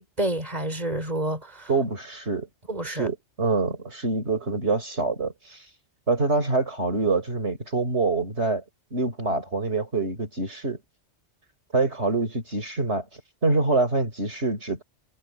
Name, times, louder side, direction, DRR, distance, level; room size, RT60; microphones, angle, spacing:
voice 1, 0.0-1.7 2.7-3.1, right 1 dB, 35° right, 5.2 m, -29 dB
voice 2, 1.7-2.5 2.8-5.6 6.1-8.6 8.9-10.8 11.7-13.0 13.4-14.8, right 3 dB, 65° right, 4.9 m, -25 dB
omnidirectional pair, 1.2 m